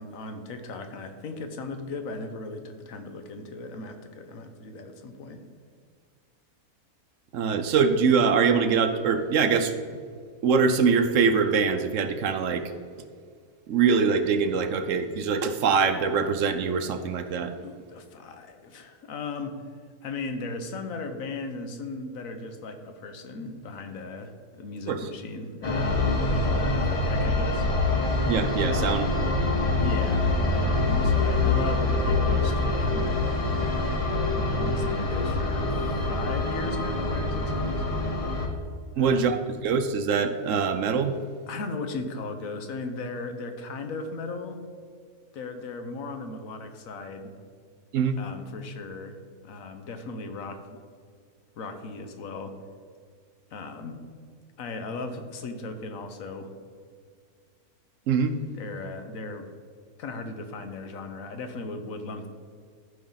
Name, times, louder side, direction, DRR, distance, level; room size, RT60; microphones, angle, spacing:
voice 1, 0.0-5.4 17.6-19.6 20.0-24.3 24.6-27.7 28.7-29.1 29.8-33.1 34.0-35.8 36.1-37.9 38.9-39.4 41.5-44.6 45.3-47.3 48.2-49.2 49.4-50.8 51.6-52.6 53.5-54.0 54.6-56.5 58.6-59.5 60.0-62.3, left 3 dB, 65° left, 7 dB, 1.3 m, -37 dB
voice 2, 7.3-9.7 10.4-12.7 13.7-17.5 24.9-25.1 28.3-29.1 39.0-41.2 47.9-48.2 58.1-58.4, right 5 dB, 65° right, 8 dB, 0.9 m, -23 dB
sound 1, 25.6-38.5, left 2 dB, 25° left, 1.0 m, -25 dB
14.5 x 5.5 x 3.9 m, 2.1 s
omnidirectional pair, 1.6 m